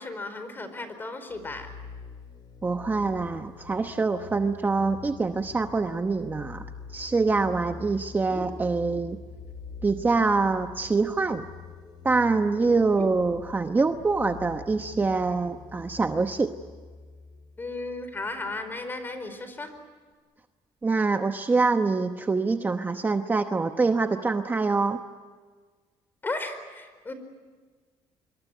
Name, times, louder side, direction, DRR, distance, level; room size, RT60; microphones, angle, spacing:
voice 1, 0.0-1.7 8.2-8.5 12.6-12.7 13.0-13.1 17.6-19.7 26.2-27.1, left 2 dB, 20° left, 10 dB, 4.5 m, -35 dB
sound 1, 1.3-18.7, left 5 dB, 50° left, 5.5 m, -45 dB
voice 2, 2.6-6.6 6.9-9.2 9.8-11.5 12.0-16.5 20.8-25.0, right 4 dB, 20° right, 7 dB, 1.0 m, -25 dB
26.5 x 23.5 x 9.3 m, 1.5 s
cardioid pair, 115°, 10 cm